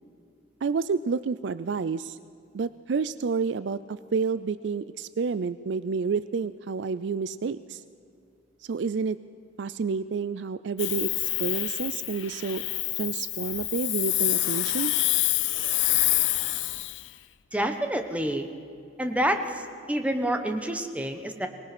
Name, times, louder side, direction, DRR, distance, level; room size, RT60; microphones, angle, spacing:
voice 1, 0.6-2.2 2.5-7.8 8.7-9.2 9.6-12.6 13.0-14.9, right 5 dB, 70° right, 15 dB, 0.4 m, -29 dB
Hiss, 10.8-17.1, left 17 dB, 85° left, 0.6 m, -27 dB
voice 2, 17.5-18.5 19.0-21.5, right 1 dB, 10° right, 6 dB, 1.2 m, -28 dB
24.0 x 19.5 x 6.1 m, 2.5 s
head